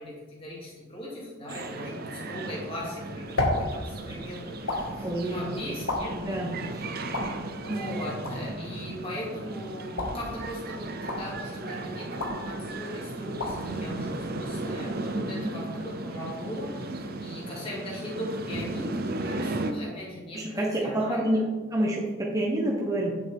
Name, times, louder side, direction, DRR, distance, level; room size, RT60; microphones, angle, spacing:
voice 1, 0.0-6.2 7.6-21.4, left 1 dB, 25° left, -5 dB, 2.5 m, -39 dB
sound 1, 1.5-19.7, right 2 dB, 45° right, 0.6 m, -36 dB
sound 2, 2.7-14.9, left 2 dB, 85° left, 1.8 m, -36 dB
voice 2, 4.7-5.7 6.1-7.0 7.7-7.8 15.1-15.5 20.3-21.4 21.7-23.1, right 1 dB, 15° right, -3 dB, 1.0 m, -29 dB
9.1 x 7.4 x 3.6 m, 1.3 s
head